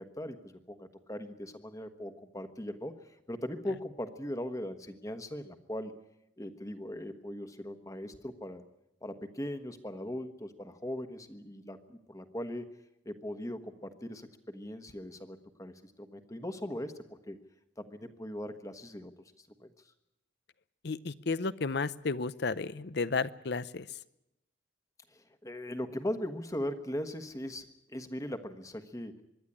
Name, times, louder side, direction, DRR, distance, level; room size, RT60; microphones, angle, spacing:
voice 1, 0.0-5.9 6.4-8.6 9.0-12.7 13.0-17.4 17.8-19.1 19.4-19.7 25.1-29.2, left 1 dB, 15° left, 8 dB, 1.3 m, -39 dB
voice 2, 20.8-23.9, left 4 dB, 55° left, 17 dB, 0.7 m, -33 dB
25.0 x 11.5 x 9.9 m, 0.87 s
head